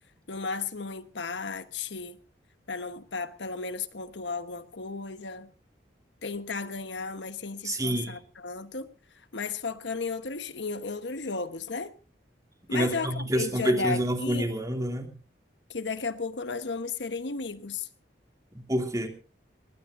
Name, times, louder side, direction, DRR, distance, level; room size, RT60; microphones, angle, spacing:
voice 1, 0.3-2.2 2.7-5.5 6.2-8.9 9.3-11.9 12.7-14.5 15.7-17.9, left 4 dB, 90° left, 1.2 m, -34 dB
voice 2, 7.6-8.1 12.7-15.1 18.7-19.1, right 1 dB, 20° right, 2.7 m, -27 dB
20.0 x 19.5 x 2.7 m
head